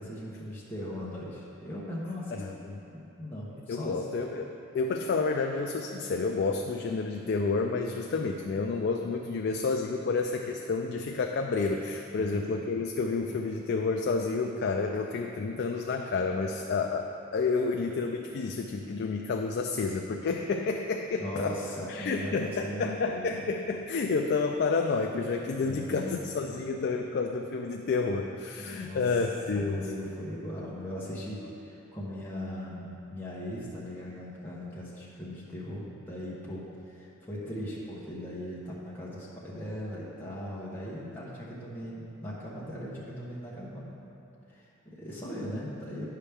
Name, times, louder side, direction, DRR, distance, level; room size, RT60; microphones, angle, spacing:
voice 1, 0.0-2.4 2.9-4.0 12.1-12.5 21.2-23.4 25.6-26.2 28.6-29.0 29.5-43.9 44.5-46.0, left 1 dB, 10° left, -8 dB, 0.9 m, -39 dB
voice 2, 2.4-2.8 3.7-21.5 21.9-29.8, left 4 dB, 50° left, 3 dB, 0.3 m, -30 dB
9.8 x 5.7 x 3.4 m, 2.8 s
head